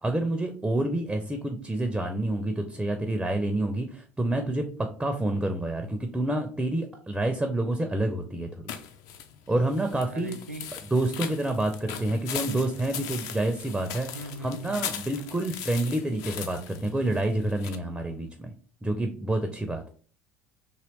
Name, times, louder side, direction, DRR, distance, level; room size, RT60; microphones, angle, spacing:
voice 1, 0.0-8.7 9.5-10.3 10.9-14.1 14.4-18.5 18.8-19.9, right 1 dB, 10° right, 5 dB, 0.4 m, -28 dB
sound 1, 8.7-17.8, left 9 dB, 55° left, 0.4 m, -39 dB
voice 2, 10.1-10.7 11.9-12.2 14.1-14.8, right 2 dB, 85° right, 7 dB, 0.4 m, -39 dB
3.0 x 2.8 x 2.9 m, 0.43 s
figure-of-eight pair, 65°, 7 cm